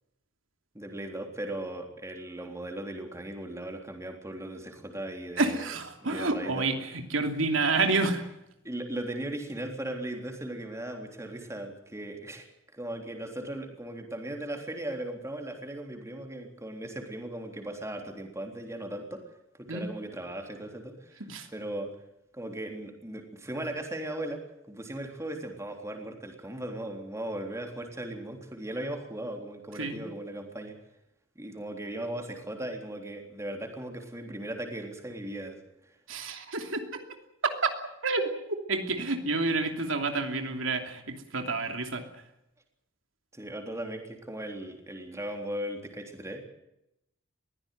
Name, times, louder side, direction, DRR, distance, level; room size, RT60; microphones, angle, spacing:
voice 1, 0.7-5.7 6.0-6.7 8.6-12.5 12.7-19.2 19.6-21.3 21.5-21.9 22.3-30.8 31.4-35.6 43.3-46.5, right 1 dB, 15° right, 3 dB, 3.6 m, -38 dB
voice 2, 5.4-8.2 19.7-19.9 21.3-21.5 29.8-30.0 36.1-37.0 37.4-37.7 38.0-38.3 38.7-42.0, right 3 dB, 80° right, 5 dB, 2.9 m, -29 dB
22.0 x 16.0 x 9.4 m, 0.85 s
head